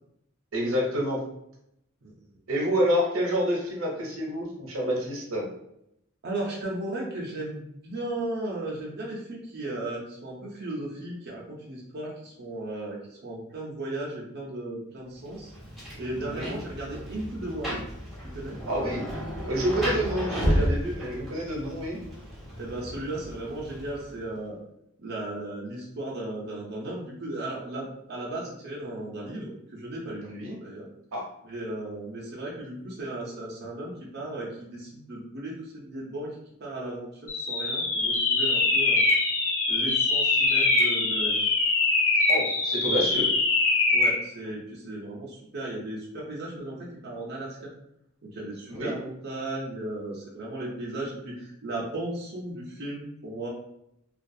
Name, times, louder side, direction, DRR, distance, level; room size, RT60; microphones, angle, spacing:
voice 1, 0.5-1.2 2.5-5.4 16.2-16.5 18.7-19.1 19.4-22.0 30.2-30.6 31.1-31.2 42.3-43.3 48.7-48.9, equal, 90° right, -2 dB, 0.7 m, -28 dB
voice 2, 6.2-15.5 16.0-17.8 18.3-18.6 22.6-24.6 25.0-30.2 30.6-30.9 31.4-36.3 36.6-37.1 37.3-39.0 39.7-41.4 43.9-47.7 48.2-53.5, right 1 dB, 50° right, -4 dB, 0.6 m, -35 dB
Rain, 15.2-24.3, equal, ahead, 0.7 m, -33 dB
sound 1, 37.3-44.2, left 3 dB, 90° left, 0.7 m, -23 dB
2.3 x 2.3 x 2.6 m, 0.78 s
head